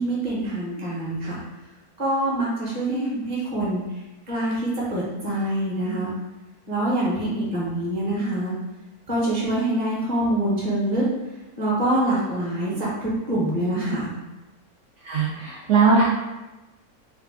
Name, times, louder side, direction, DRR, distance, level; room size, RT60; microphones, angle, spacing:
voice 1, 0.0-1.4 2.0-3.8 4.3-6.1 6.7-8.5 9.1-11.1 11.6-14.1, right 1 dB, 30° right, -6 dB, 1.0 m, -25 dB
voice 2, 15.1-16.0, right 4 dB, 65° right, -4 dB, 0.8 m, -19 dB
3.2 x 2.4 x 3.6 m, 1.1 s
omnidirectional pair, 1.6 m